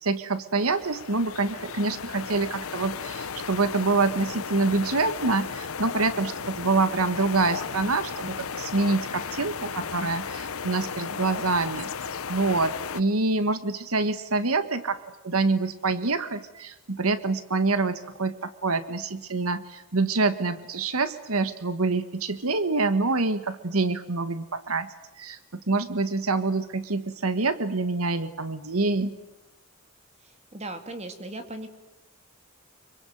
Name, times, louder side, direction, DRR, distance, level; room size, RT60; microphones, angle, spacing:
voice 1, 0.0-11.9 12.3-24.9 25.2-29.1, right 3 dB, 85° right, 12 dB, 1.6 m, -26 dB
sound 1, 0.6-13.0, left 6 dB, 80° left, 0.9 m, -35 dB
voice 2, 30.2-31.7, right 2 dB, 30° right, 8 dB, 2.4 m, -38 dB
26.5 x 24.0 x 9.2 m, 0.92 s
head